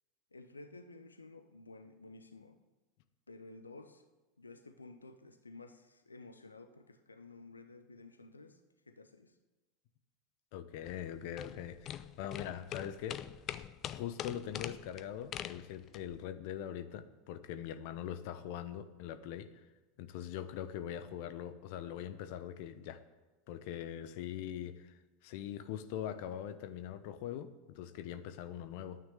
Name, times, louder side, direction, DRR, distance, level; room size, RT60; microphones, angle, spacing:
voice 1, 0.3-2.6 3.3-4.0 4.4-9.4, left 3 dB, 85° left, 8 dB, 0.8 m, -53 dB
voice 2, 10.5-13.2 13.9-19.6 20.0-23.0 23.5-29.0, left 10 dB, 55° left, 11 dB, 0.9 m, -42 dB
sound 1, 10.8-16.2, left 10 dB, 40° left, 0.6 m, -44 dB
9.6 x 9.4 x 9.5 m, 1.2 s
figure-of-eight pair, 80°, 0 cm